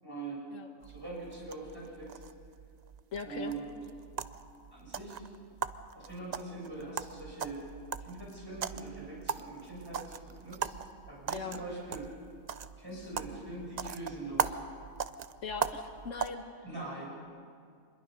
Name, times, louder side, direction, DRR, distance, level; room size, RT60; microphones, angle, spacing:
voice 1, 0.0-0.4 0.8-2.2 3.2-3.6 4.7-5.2 5.9-7.6 8.0-10.8 11.1-12.1 12.8-14.6 16.6-17.1, right 3 dB, 15° right, -5 dB, 7.0 m, -42 dB
sound 1, 0.8-16.3, right 7 dB, 50° right, 0.5 m, -40 dB
voice 2, 3.1-3.5 11.3-11.6 15.4-16.4, left 5 dB, 75° left, 5 dB, 1.7 m, -39 dB
26.0 x 21.5 x 5.3 m, 2.4 s
omnidirectional pair, 1.3 m